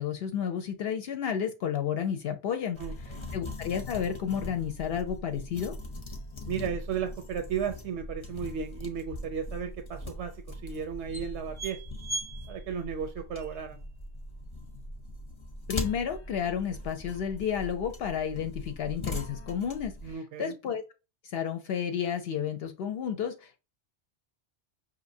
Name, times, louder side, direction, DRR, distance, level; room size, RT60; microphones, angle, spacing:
voice 1, 0.0-2.8 3.3-5.8 15.7-20.8 21.2-23.6, left 8 dB, 65° left, 0.7 m, -31 dB
sound 1, 2.7-20.1, left 1 dB, 30° left, 0.6 m, -40 dB
voice 2, 2.8-3.3 6.5-11.8 12.5-13.8 20.0-20.5, right 7 dB, 85° right, 0.9 m, -35 dB
5.1 x 2.7 x 2.6 m
omnidirectional pair, 1.1 m